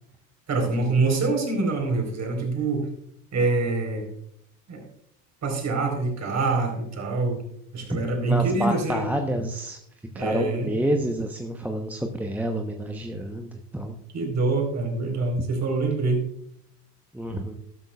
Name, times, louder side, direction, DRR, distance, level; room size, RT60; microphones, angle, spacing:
voice 1, 0.5-2.8 3.3-4.0 4.7-4.8 5.4-7.4 7.7-9.1 10.1-10.7 14.1-16.3, right 3 dB, 35° right, 2 dB, 4.3 m, -25 dB
voice 2, 8.3-9.8 10.1-14.0 17.1-17.5, right 1 dB, 5° right, 4 dB, 1.0 m, -28 dB
13.0 x 12.5 x 2.4 m, 0.70 s
hypercardioid pair, 75°, 47 cm